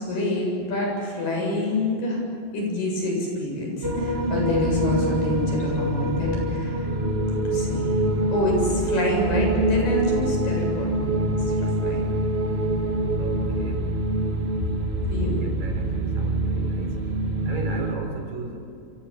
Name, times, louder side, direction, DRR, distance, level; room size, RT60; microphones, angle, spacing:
voice 1, 0.0-2.2 2.5-6.9 7.3-7.9 8.3-10.9 11.4-12.0 15.0-15.4, left 1 dB, 75° left, 0 dB, 9.2 m, -27 dB
sound 1, 3.8-17.9, right 1 dB, 35° right, 0.9 m, -25 dB
voice 2, 13.2-14.5 15.2-17.1 17.5-18.7, right 3 dB, 90° right, 3 dB, 5.9 m, -36 dB
27.0 x 27.0 x 7.3 m, 2.5 s
omnidirectional pair, 3.9 m